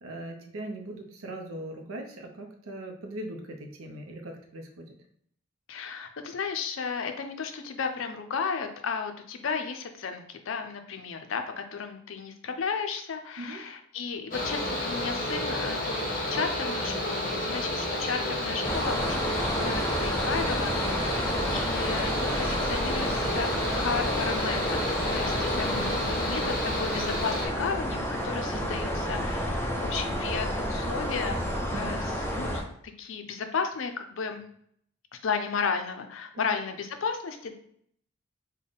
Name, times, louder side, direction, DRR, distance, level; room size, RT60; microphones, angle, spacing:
voice 1, 0.0-4.9 13.4-13.6 25.7-26.0 31.7-32.0 36.3-36.5, right 1 dB, 85° right, 3 dB, 0.5 m, -40 dB
voice 2, 5.7-24.8 25.1-31.5 31.7-32.6 33.0-34.4 35.1-37.5, left 5 dB, 70° left, 7 dB, 0.5 m, -34 dB
Mechanical fan, 14.3-27.5, left 1 dB, 40° left, 0.8 m, -31 dB
sound 1, 18.6-32.6, equal, 10° left, 0.4 m, -30 dB
3.5 x 2.2 x 3.8 m, 0.66 s
head